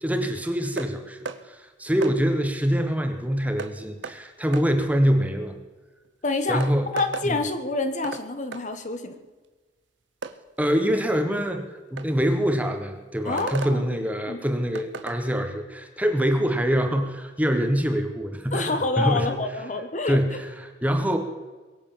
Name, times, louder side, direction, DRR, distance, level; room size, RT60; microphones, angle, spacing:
voice 1, 0.0-5.6 6.5-6.9 7.2-7.4 10.6-11.6 11.9-19.3 20.1-21.2, equal, 10° right, 6 dB, 1.4 m, -25 dB
sound 1, 0.8-0.9 1.3-1.4 2.0-2.2 3.6-3.7 4.0-4.2 4.5-4.7 6.0-6.1 6.6-7.3 8.0-8.3 8.5-8.6 10.2-10.4 12.0-12.1 13.4-13.8 14.7-15.2, right 4 dB, 90° right, 1.0 m, -34 dB
voice 2, 6.2-6.6 6.9-9.2 13.2-13.8 14.3-14.4 18.5-20.2, left 3 dB, 45° left, 8 dB, 1.3 m, -27 dB
22.0 x 8.1 x 7.3 m, 1.3 s
head